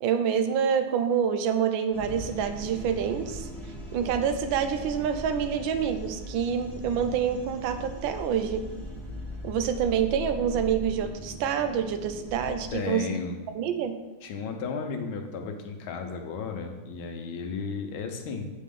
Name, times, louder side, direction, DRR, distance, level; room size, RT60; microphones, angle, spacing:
voice 1, 0.0-3.5 3.9-8.6 9.4-13.1 13.5-13.9, right 8 dB, 75° right, 8 dB, 1.3 m, -27 dB
sound 1, 1.9-12.7, equal, ahead, 1.1 m, -39 dB
voice 2, 12.7-13.4 14.2-18.5, left 5 dB, 80° left, 5 dB, 1.5 m, -34 dB
8.2 x 4.2 x 3.6 m, 1.1 s
omnidirectional pair, 2.2 m